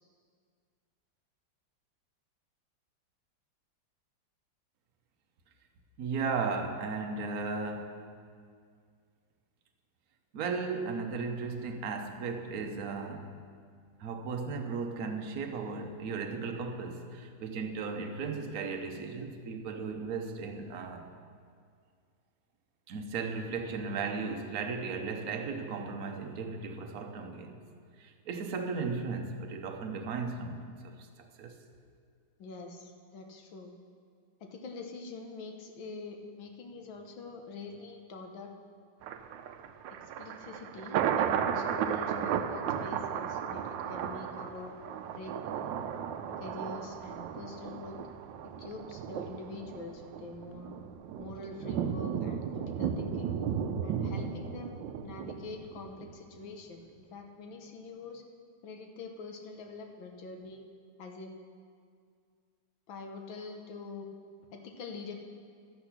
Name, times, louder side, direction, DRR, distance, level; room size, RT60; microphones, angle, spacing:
voice 1, 6.0-8.1 10.3-13.4 14.0-21.1 22.9-27.5 28.0-31.0 31.4-31.6, right 4 dB, 55° right, 4 dB, 1.2 m, -36 dB
voice 2, 32.4-33.7 34.4-38.5 39.9-44.7 45.1-45.4 46.4-48.0 48.4-50.7 51.2-53.3 53.8-58.2 58.6-60.6 61.0-61.3 62.9-64.1 64.5-65.1, left 3 dB, 85° left, 4 dB, 1.8 m, -45 dB
Thunder, 39.0-56.1 56.5-56.6, right 8 dB, 80° right, 1.3 m, -35 dB
12.0 x 8.3 x 5.9 m, 2.1 s
omnidirectional pair, 2.1 m